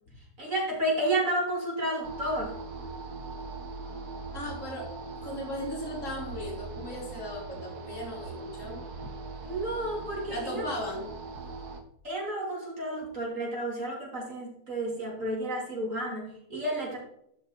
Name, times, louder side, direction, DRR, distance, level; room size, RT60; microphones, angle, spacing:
voice 1, 0.4-2.6 9.4-10.7 12.0-17.0, right 1 dB, 55° right, -3 dB, 3.4 m, -31 dB
sound 1, 2.0-11.8, right 4 dB, 85° right, 1.7 m, -40 dB
voice 2, 4.3-4.9 5.2-9.1 10.3-11.1, left 1 dB, 55° left, -3 dB, 3.6 m, -37 dB
12.5 x 5.5 x 4.4 m, 0.75 s
omnidirectional pair, 1.6 m